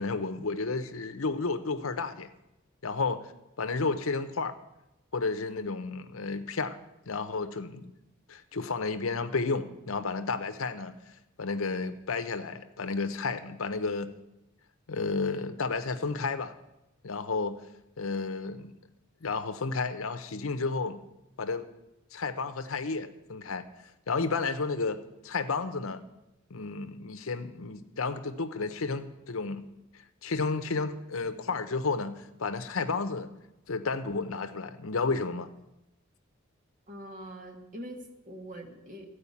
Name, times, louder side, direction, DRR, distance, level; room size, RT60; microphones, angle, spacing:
voice 1, 0.0-2.3 2.8-3.3 3.6-4.5 5.1-6.8 7.1-7.9 8.3-10.9 11.4-14.1 14.9-16.5 17.0-17.6 18.0-18.7 19.2-21.0 21.4-21.6 22.1-23.7 24.1-26.0 26.5-29.7 30.2-33.3 33.7-35.5, left 4 dB, 75° left, 10 dB, 0.8 m, -32 dB
voice 2, 36.9-39.1, right 1 dB, 40° right, 3 dB, 1.5 m, -43 dB
14.0 x 4.9 x 8.4 m, 0.93 s
head